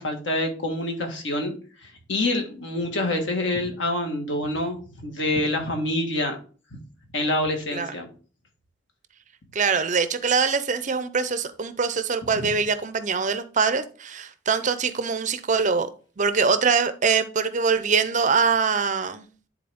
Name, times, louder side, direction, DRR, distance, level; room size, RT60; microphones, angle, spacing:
voice 1, 0.0-1.5 2.1-6.4 7.1-8.1 12.3-12.5, left 1 dB, 60° left, 3 dB, 1.7 m, -26 dB
voice 2, 9.5-15.9 16.2-19.2, right 5 dB, 35° right, 11 dB, 0.5 m, -23 dB
10.5 x 4.0 x 3.5 m, 0.39 s
head